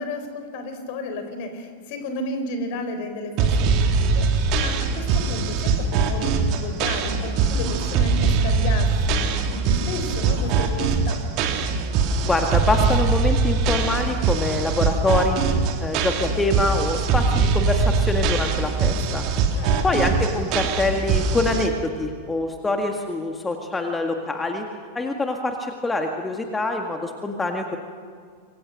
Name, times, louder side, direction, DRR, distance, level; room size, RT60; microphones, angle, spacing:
voice 1, 0.0-11.2 19.5-20.0, left 2 dB, 45° left, 7 dB, 4.2 m, -33 dB
sound 1, 3.4-21.7, right 4 dB, 40° right, 2.8 m, -22 dB
voice 2, 12.2-15.4 15.8-19.2 19.8-24.7 25.0-27.8, left 2 dB, 10° left, 4 dB, 1.9 m, -25 dB
27.5 x 24.0 x 6.6 m, 2.1 s
figure-of-eight pair, 90°, 0 cm